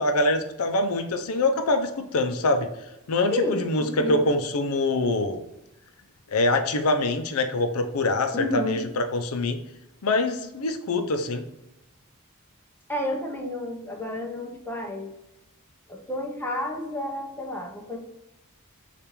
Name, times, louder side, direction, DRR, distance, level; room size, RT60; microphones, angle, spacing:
voice 1, 0.0-2.7 3.1-5.4 6.3-9.6 10.0-11.4, left 2 dB, 75° left, 7 dB, 0.5 m, -24 dB
voice 2, 3.3-4.2 8.3-8.8 12.9-15.1 15.9-18.0, left 1 dB, 10° left, 0 dB, 0.6 m, -30 dB
6.8 x 2.5 x 3.0 m, 0.90 s
head